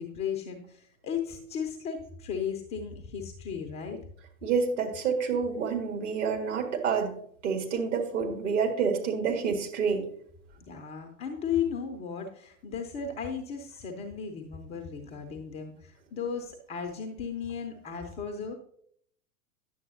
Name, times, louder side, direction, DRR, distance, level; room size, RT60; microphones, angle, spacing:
voice 1, 0.0-4.0 10.7-18.5, left 7 dB, 15° left, 4 dB, 0.5 m, -35 dB
voice 2, 4.4-7.1 7.4-10.0, right 6 dB, 55° right, 2 dB, 1.8 m, -28 dB
10.0 x 7.2 x 2.7 m, 0.65 s
figure-of-eight pair, 95°, 42 cm